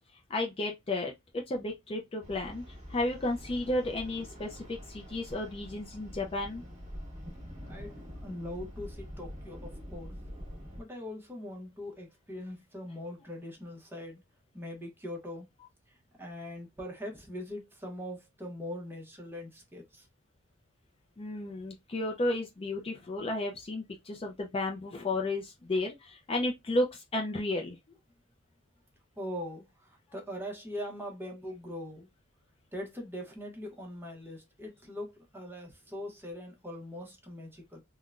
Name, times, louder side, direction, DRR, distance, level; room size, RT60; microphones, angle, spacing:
voice 1, 0.1-2.6 2.9-6.6 21.2-27.8, left 2 dB, 25° left, 0.4 m, -33 dB
sound 1, 2.2-10.8, equal, 35° right, 1.2 m, -45 dB
voice 2, 7.7-10.2 10.8-14.2 14.5-15.5 15.9-20.1 29.2-32.1 32.7-37.8, left 1 dB, 10° right, 0.8 m, -42 dB
3.6 x 2.1 x 2.4 m
head